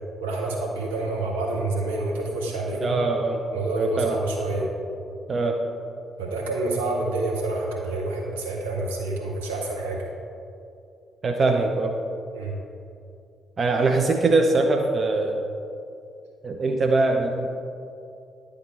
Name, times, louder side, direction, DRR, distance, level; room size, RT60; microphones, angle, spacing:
voice 1, 0.2-3.0 3.5-4.7 6.2-10.1 12.3-12.6, right 2 dB, 75° right, -2 dB, 0.9 m, -28 dB
voice 2, 2.8-3.4 3.8-4.2 5.3-5.6 11.2-11.9 13.6-15.4 16.4-17.5, right 3 dB, 40° right, 3 dB, 0.5 m, -22 dB
10.0 x 3.6 x 4.4 m, 2.6 s
figure-of-eight pair, 40°, 0 cm